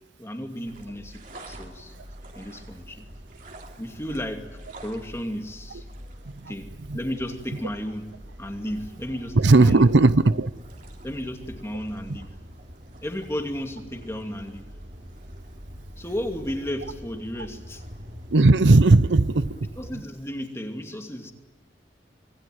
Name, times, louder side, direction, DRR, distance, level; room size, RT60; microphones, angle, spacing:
voice 1, 0.2-1.9 2.3-3.1 3.8-5.8 6.5-9.8 11.0-12.3 13.0-14.6 16.0-17.8 19.5-21.3, equal, 15° left, 4 dB, 2.6 m, -34 dB
sound 1, 0.7-20.0, equal, 45° right, 3.5 m, -44 dB
voice 2, 9.4-10.5 18.3-19.6, right 2 dB, 80° right, 16 dB, 0.7 m, -16 dB
26.0 x 20.0 x 9.5 m, 1.2 s
head